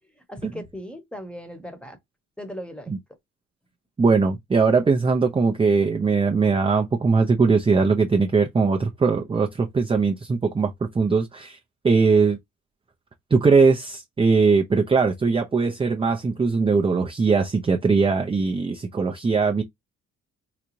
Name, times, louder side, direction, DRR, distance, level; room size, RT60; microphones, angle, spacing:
voice 1, 0.3-2.0 2.4-3.0, equal, 5° left, 1.0 m, -37 dB
voice 2, 4.0-11.6 11.8-12.4 13.3-19.6, right 4 dB, 20° right, 0.5 m, -20 dB
3.9 x 2.3 x 3.0 m
cardioid pair, 90°, 30 cm